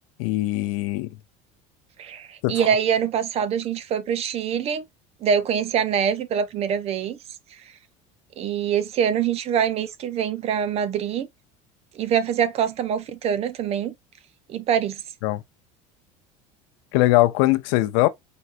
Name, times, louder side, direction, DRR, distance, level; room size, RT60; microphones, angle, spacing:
voice 1, 0.2-1.1 2.4-2.5 15.2-15.4 16.9-18.1, left 18 dB, 80° left, 0.6 m, -21 dB
voice 2, 2.0-4.8 5.2-7.2 8.4-11.3 11.9-13.9 14.5-15.0, right 8 dB, 40° right, 0.6 m, -24 dB
4.4 x 3.9 x 2.4 m
cardioid pair, 130°, 16 cm